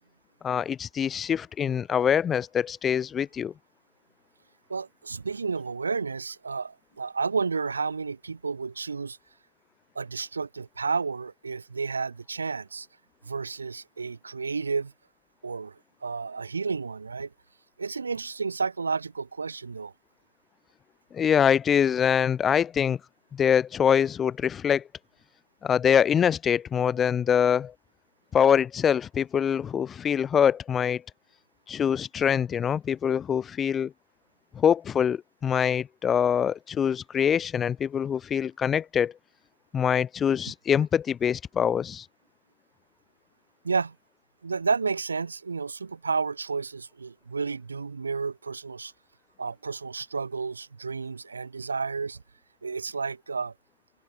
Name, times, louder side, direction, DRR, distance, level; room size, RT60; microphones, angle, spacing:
voice 1, 0.4-3.5 21.1-23.0 23.3-24.8 25.6-27.7 28.3-31.0 31.7-33.9 34.5-39.1 39.7-42.0, left 8 dB, 25° left, 1.3 m, -24 dB
voice 2, 4.7-9.2 10.0-12.9 13.2-14.9 15.4-17.3 17.8-19.9 43.6-44.0 44.4-48.9 49.4-52.2 52.6-53.5, right 4 dB, 75° right, 2.3 m, -31 dB
figure-of-eight pair, 90°, 0 cm